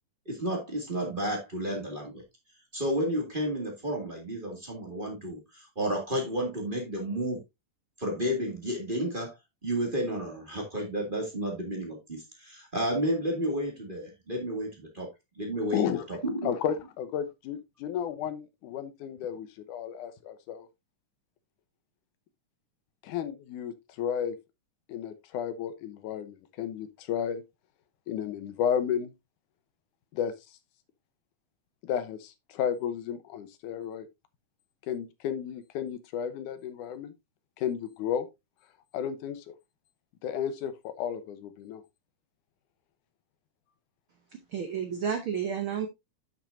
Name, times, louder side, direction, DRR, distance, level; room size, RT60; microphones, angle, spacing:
voice 1, 0.3-2.2 2.7-7.4 8.0-9.3 9.6-15.1 15.4-16.5, equal, 20° right, 1.8 m, -31 dB
voice 2, 15.7-16.0 16.4-20.7 23.0-24.3 24.9-27.4 28.1-29.1 30.1-30.3 31.8-34.1 34.9-37.1 37.6-38.3 38.9-39.5 40.2-41.8, left 8 dB, 80° left, 2.3 m, -33 dB
voice 3, 44.3-45.9, right 7 dB, 70° right, 1.2 m, -31 dB
10.5 x 6.0 x 2.6 m
omnidirectional pair, 3.7 m